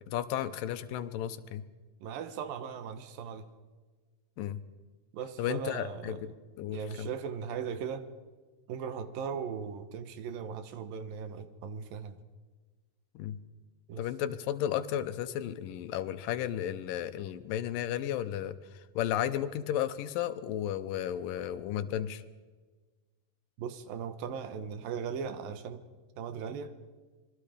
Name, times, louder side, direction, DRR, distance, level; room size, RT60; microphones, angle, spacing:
voice 1, 0.1-1.6 4.4-4.6 5.4-6.3 6.6-7.1 13.2-13.4 14.0-22.2, left 11 dB, 85° left, 11 dB, 2.6 m, -33 dB
voice 2, 2.0-3.5 5.1-6.2 6.7-8.1 8.7-12.2 13.9-14.1 23.6-25.8 26.2-26.7, right 7 dB, 85° right, 11 dB, 3.0 m, -38 dB
26.5 x 22.0 x 5.1 m, 1.3 s
omnidirectional pair, 3.9 m